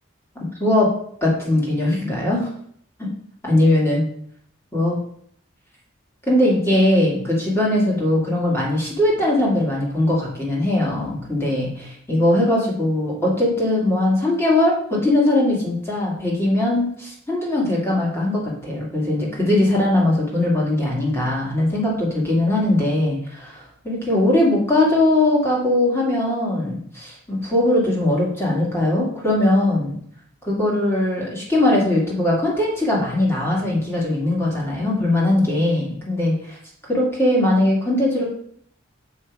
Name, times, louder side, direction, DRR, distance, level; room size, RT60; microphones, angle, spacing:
voice 1, 0.6-0.9 1.2-2.5 3.0-3.1 3.4-4.0 4.7-5.0 6.2-30.0 30.4-36.6 36.9-38.2, left 1 dB, 10° left, -4 dB, 2.2 m, -20 dB
6.4 x 5.5 x 4.8 m, 0.65 s
head